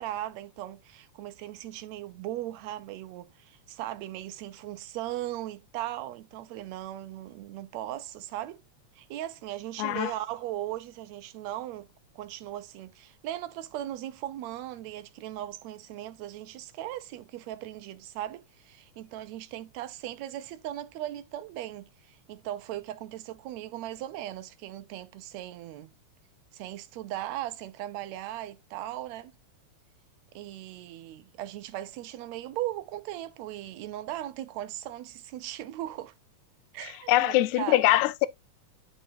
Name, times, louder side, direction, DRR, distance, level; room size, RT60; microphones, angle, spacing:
voice 1, 0.0-8.6 9.0-11.9 12.2-25.9 26.5-29.3 30.4-36.1 36.7-37.9, right 13 dB, 75° right, 1.8 m, -38 dB
voice 2, 9.8-10.1 37.1-38.3, left 16 dB, 85° left, 1.9 m, -23 dB
11.0 x 3.7 x 2.6 m
omnidirectional pair, 3.3 m